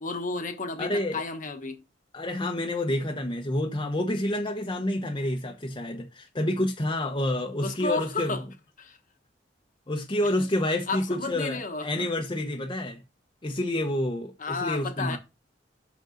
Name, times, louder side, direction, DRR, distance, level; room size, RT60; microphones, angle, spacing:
voice 1, 0.0-1.8 7.6-8.4 8.8-9.0 10.9-11.9 14.4-15.2, left 3 dB, 45° left, 1.2 m, -32 dB
voice 2, 0.8-1.2 2.1-8.4 9.9-13.0 13.4-15.2, left 1 dB, 25° left, 0.9 m, -28 dB
6.5 x 6.2 x 3.8 m
head